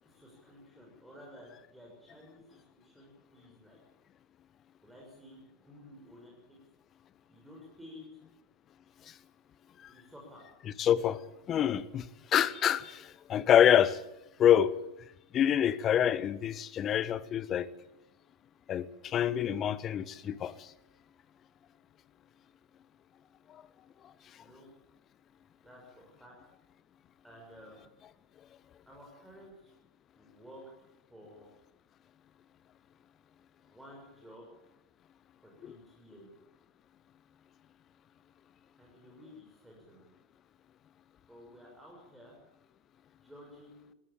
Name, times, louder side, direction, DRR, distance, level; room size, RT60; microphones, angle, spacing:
voice 1, 0.0-3.8 4.8-6.6 7.3-8.2 9.9-10.4 24.4-24.7 25.6-26.3 27.2-27.9 28.8-29.7 30.2-30.6 31.1-31.5 33.6-34.5 35.4-36.3 38.8-40.1 41.3-42.4 43.1-43.9, left 1 dB, 5° right, 6.6 m, -53 dB
voice 2, 10.8-11.2 11.5-12.1 12.3-14.0 14.4-14.7 15.3-17.7 18.7-20.7 35.6-35.8, left 10 dB, 30° left, 1.0 m, -26 dB
20.5 x 17.0 x 8.9 m
figure-of-eight pair, 90°, 0 cm